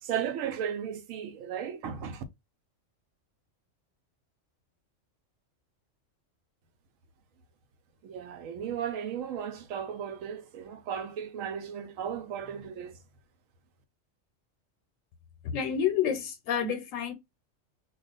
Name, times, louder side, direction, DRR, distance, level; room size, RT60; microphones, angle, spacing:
voice 1, 0.0-2.2 8.0-13.0, right 8 dB, 85° right, 1.0 m, -35 dB
voice 2, 15.4-17.1, left 8 dB, 80° left, 1.0 m, -29 dB
2.4 x 2.3 x 3.8 m
omnidirectional pair, 1.3 m